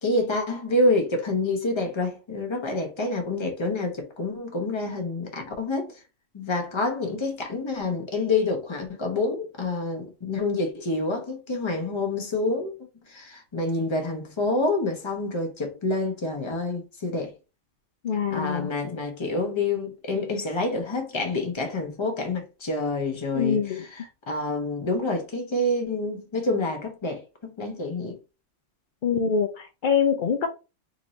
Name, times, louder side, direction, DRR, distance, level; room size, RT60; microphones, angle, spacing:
voice 1, 0.0-6.0 6.3-12.7 13.1-17.3 18.3-28.2, left 2 dB, 25° left, 0.7 m, -27 dB
voice 2, 18.0-18.7 23.4-23.8 29.0-30.5, left 6 dB, 75° left, 0.4 m, -24 dB
3.9 x 2.6 x 3.0 m
omnidirectional pair, 1.4 m